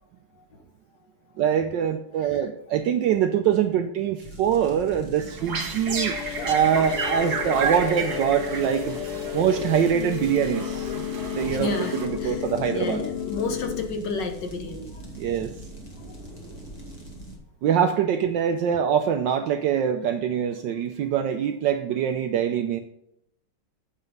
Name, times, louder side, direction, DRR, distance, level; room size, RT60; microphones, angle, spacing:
voice 1, 1.4-9.0 9.3-11.1 11.3-13.0 15.2-15.5 17.6-22.8, right 8 dB, 75° right, 7 dB, 1.1 m, -24 dB
voice 2, 2.2-2.5 5.7-5.9 10.4-10.5 11.2-12.5 12.7-15.0 16.0-16.1, left 3 dB, 60° left, 5 dB, 1.5 m, -32 dB
sound 1, 4.2-17.4, right 1 dB, 20° left, 1.4 m, -41 dB
sound 2, 5.2-12.5, right 5 dB, 50° right, 1.6 m, -32 dB
sound 3, 5.9-13.9, left 11 dB, 90° left, 1.5 m, -33 dB
8.2 x 5.7 x 5.3 m, 0.76 s
omnidirectional pair, 2.4 m